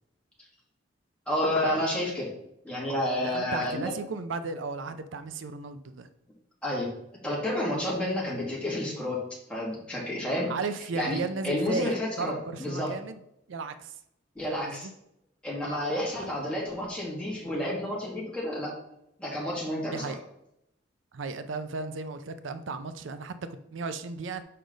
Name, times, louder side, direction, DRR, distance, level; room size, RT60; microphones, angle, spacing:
voice 1, 1.3-2.3 2.6-3.9 6.6-6.9 7.2-9.2 9.5-10.5 10.9-11.2 11.4-12.9 14.4-14.9 15.4-18.7 19.2-20.1, left 1 dB, 5° left, -5 dB, 2.2 m, -30 dB
voice 2, 3.2-6.1 10.5-13.2 13.5-14.0 14.5-14.9 16.2-16.3 19.9-20.2 21.1-24.4, right 4 dB, 85° right, 10 dB, 0.5 m, -35 dB
6.6 x 5.1 x 3.9 m, 0.80 s
head